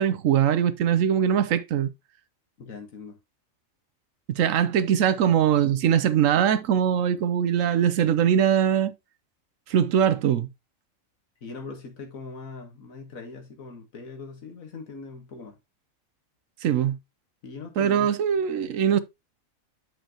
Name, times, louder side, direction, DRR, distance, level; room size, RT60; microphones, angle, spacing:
voice 1, 0.0-1.9 4.3-8.9 9.7-10.5 16.6-17.0 17.8-19.0, right 9 dB, 75° right, 1.0 m, -22 dB
voice 2, 2.6-3.2 11.4-15.6 17.4-18.1, left 4 dB, 80° left, 1.9 m, -41 dB
7.8 x 5.7 x 2.9 m
omnidirectional pair, 1.4 m